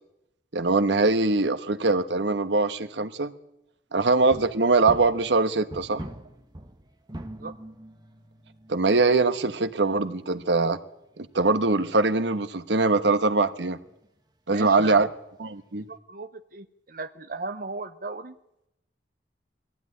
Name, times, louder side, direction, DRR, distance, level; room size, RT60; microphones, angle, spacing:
voice 1, 0.5-3.3 3.9-6.0 8.7-10.8 11.2-13.8 14.5-15.1 15.4-15.8, right 3 dB, 85° right, 10 dB, 1.2 m, -22 dB
sound 1, 4.2-11.8 12.1-12.3 12.8-12.9 13.1-13.2 13.4-13.5 13.7-14.1 14.7-14.8 15.3-15.4, right 1 dB, 25° right, 1.4 m, -44 dB
voice 2, 14.5-15.0 15.8-18.4, right 3 dB, 50° right, 9 dB, 0.7 m, -36 dB
22.0 x 15.0 x 9.8 m, 0.87 s
head